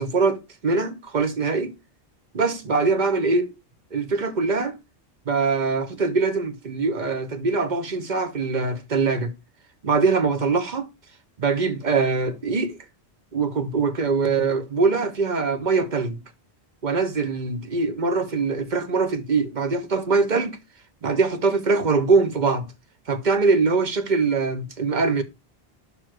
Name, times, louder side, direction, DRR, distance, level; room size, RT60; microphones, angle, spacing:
voice 1, 0.0-1.7 2.3-3.5 3.9-4.8 5.3-9.3 9.8-10.9 11.4-12.8 13.3-16.2 16.8-20.6 21.0-22.7 23.1-25.2, right 4 dB, 45° right, 1.1 m, -23 dB
5.5 x 4.7 x 6.1 m
omnidirectional pair, 1.1 m